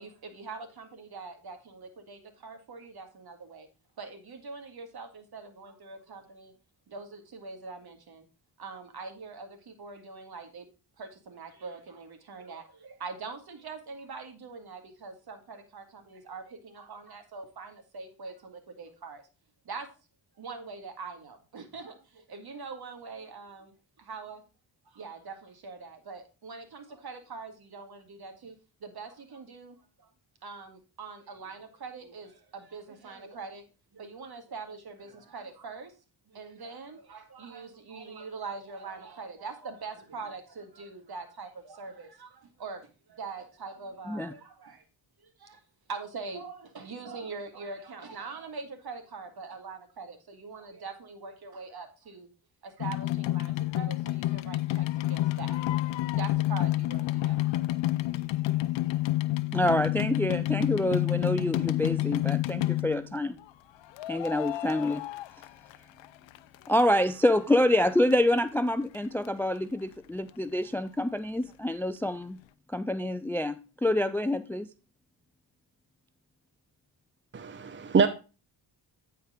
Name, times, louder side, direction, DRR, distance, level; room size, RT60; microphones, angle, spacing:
voice 1, 0.0-3.7 4.0-6.5 6.9-8.3 8.6-10.7 11.0-19.3 19.6-19.9 20.4-24.4 24.9-28.6 28.8-30.1 30.4-33.6 33.9-35.9 36.3-44.8 45.2-45.6 45.9-52.3 52.6-55.6 55.8-57.4, right 4 dB, 55° right, 6 dB, 2.1 m, -43 dB
sound 1, 52.8-63.1 64.0-66.1 66.3-67.3 67.8-67.9 68.1-68.2 68.4-68.5 68.9-69.0 69.3-69.4, left 16 dB, 75° left, 0.6 m, -29 dB
voice 2, 59.5-63.4 64.1-65.0 66.7-72.4 72.7-74.7, left 1 dB, 5° left, 13 dB, 0.4 m, -27 dB
voice 3, 77.3-78.1, right 5 dB, 25° right, 10 dB, 0.7 m, -24 dB
9.2 x 4.6 x 5.0 m, 0.32 s
cardioid pair, 75°, 44 cm